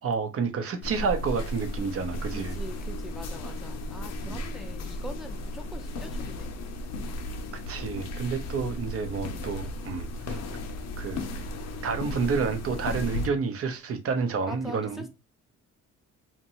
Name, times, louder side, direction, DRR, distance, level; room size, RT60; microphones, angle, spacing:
voice 1, 0.0-2.5 4.2-4.4 7.7-10.4 11.0-11.2 11.8-15.0, right 5 dB, 50° right, 0.7 m, -29 dB
sound 1, 0.8-13.3, left 1 dB, 60° left, 0.6 m, -35 dB
voice 2, 2.3-6.5 14.5-15.1, left 1 dB, ahead, 0.5 m, -43 dB
2.6 x 2.2 x 2.9 m
cardioid pair, 90°, 30 cm